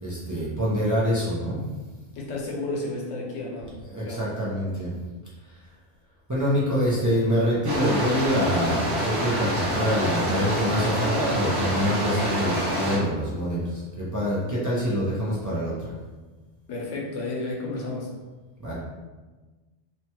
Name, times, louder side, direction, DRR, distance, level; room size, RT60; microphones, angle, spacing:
voice 1, 0.0-1.6 3.9-4.9 5.5-5.6 6.3-15.9 18.6-18.7, equal, 25° right, -8 dB, 0.4 m, -25 dB
voice 2, 2.1-4.2 16.7-18.1, left 2 dB, 85° left, -2 dB, 1.0 m, -32 dB
Lightning and Rain in the city, 7.6-13.0, equal, 60° right, 1.2 m, -26 dB
2.9 x 2.2 x 2.9 m, 1.3 s
omnidirectional pair, 1.2 m